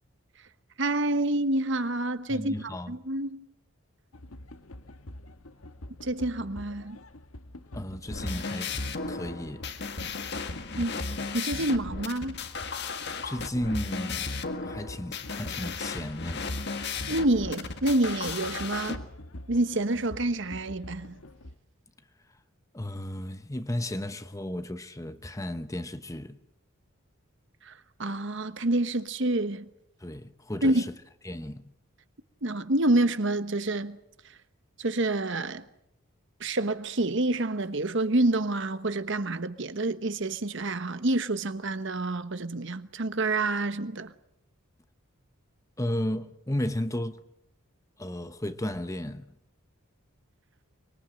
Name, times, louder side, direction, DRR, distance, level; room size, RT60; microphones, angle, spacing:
voice 1, 0.8-3.5 6.0-7.0 10.0-10.1 10.8-11.0 11.3-12.4 17.1-19.0 19.5-21.2 27.6-27.7 28.0-29.6 30.6-30.9 32.4-34.0 34.8-35.6 36.4-44.1, right 2 dB, 55° right, 1.2 m, -28 dB
voice 2, 2.3-2.9 7.7-9.6 13.2-14.3 14.6-16.4 22.7-26.4 30.0-30.9 31.2-31.7 45.8-47.2 48.0-49.2, left 1 dB, 15° left, 0.9 m, -34 dB
sound 1, 4.1-21.6, left 1 dB, 80° left, 1.5 m, -46 dB
sound 2, 8.0-19.0, left 4 dB, 50° left, 1.7 m, -35 dB
24.5 x 23.0 x 7.7 m
head